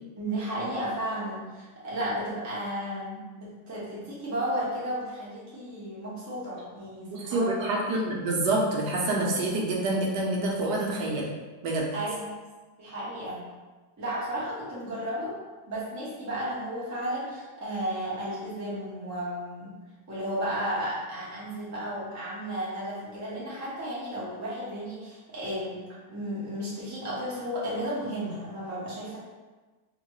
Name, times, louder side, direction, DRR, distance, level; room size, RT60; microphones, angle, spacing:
voice 1, 0.2-7.8 11.9-12.3 12.8-13.5 14.0-15.4 15.7-19.7 20.1-29.2, right 1 dB, 15° right, -8 dB, 0.6 m, -33 dB
voice 2, 7.1-11.3 11.6-11.9, right 2 dB, 80° right, -2 dB, 1.2 m, -27 dB
3.6 x 2.2 x 3.0 m, 1.3 s
omnidirectional pair, 1.7 m